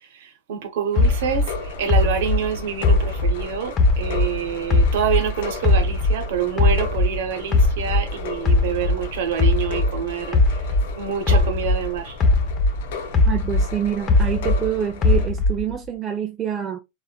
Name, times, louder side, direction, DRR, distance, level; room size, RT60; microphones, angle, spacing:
voice 1, 0.2-10.4 11.0-12.2, right 8 dB, 75° right, 0.9 m, -26 dB
sound 1, 0.9-15.3, left 4 dB, 75° left, 0.8 m, -36 dB
sound 2, 1.0-4.4 4.7-7.2 7.5-11.9 12.2-14.7 15.0-15.7, left 2 dB, 30° left, 0.7 m, -19 dB
voice 2, 13.3-16.8, right 9 dB, 25° right, 0.4 m, -26 dB
3.4 x 2.4 x 2.3 m
supercardioid pair, 130°, 0 cm